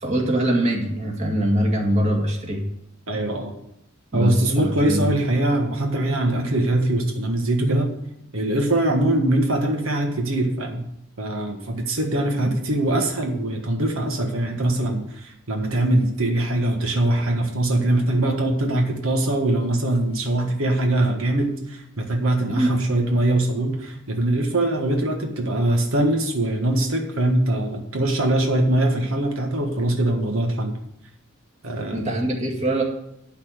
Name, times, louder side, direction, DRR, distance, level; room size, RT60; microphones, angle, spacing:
voice 1, 0.0-2.6 4.1-5.0 22.5-22.7 31.9-32.8, right 1 dB, 35° right, -1 dB, 2.0 m, -23 dB
voice 2, 3.1-3.5 4.1-7.9 8.3-10.9 11.2-30.8 31.6-32.2, right 1 dB, 90° right, 3 dB, 1.5 m, -22 dB
11.5 x 4.2 x 8.1 m, 0.78 s
head